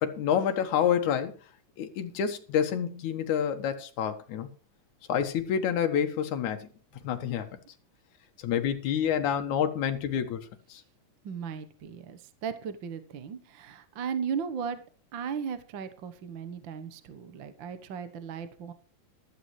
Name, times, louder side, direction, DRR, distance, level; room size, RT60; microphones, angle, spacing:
voice 1, 0.0-1.3 1.8-4.5 5.1-6.7 7.0-7.5 8.4-10.8, left 8 dB, 70° left, 6 dB, 2.7 m, -28 dB
voice 2, 11.2-14.8 15.1-18.7, right 7 dB, 55° right, 11 dB, 1.3 m, -36 dB
14.0 x 13.0 x 3.2 m, 0.39 s
omnidirectional pair, 3.6 m